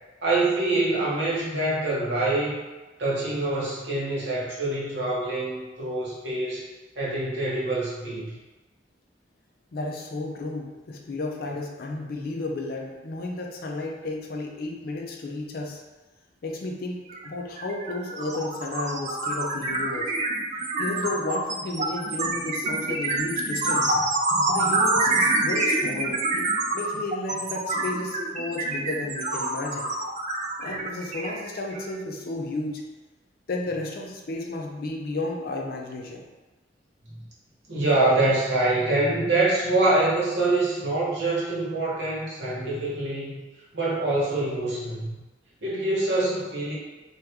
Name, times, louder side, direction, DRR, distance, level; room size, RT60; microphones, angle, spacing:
voice 1, 0.2-2.6 3.0-6.7 7.0-8.4 37.1-37.2 37.7-43.4 43.7-45.2 45.6-46.7, right 2 dB, 65° right, -6 dB, 1.0 m, -25 dB
voice 2, 9.7-15.8 16.4-20.1 20.8-24.0 24.5-29.9 30.6-32.8 33.5-36.2, left 2 dB, 55° left, 1 dB, 0.4 m, -33 dB
sound 1, 17.1-17.3 17.6-31.9, right 2 dB, 40° right, 0.4 m, -26 dB
2.8 x 2.3 x 3.4 m, 1.2 s
head